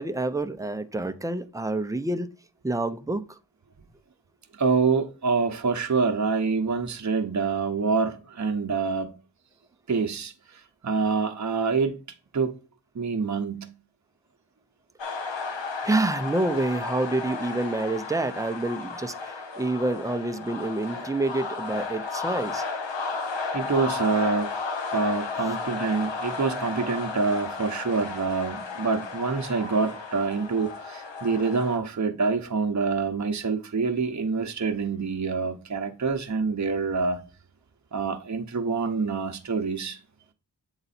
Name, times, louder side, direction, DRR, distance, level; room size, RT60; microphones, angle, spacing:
voice 1, 0.0-2.3 2.6-3.2 15.8-22.6, right 2 dB, 10° right, 0.5 m, -28 dB
voice 2, 4.5-9.2 9.9-12.0 12.3-12.5 12.9-13.7 23.5-24.5 24.9-37.2 37.9-40.0, right 4 dB, 40° right, 0.8 m, -26 dB
sound 1, 15.0-31.8, left 4 dB, 85° left, 1.1 m, -33 dB
8.0 x 3.9 x 4.2 m
wide cardioid pair, 85°, 43 cm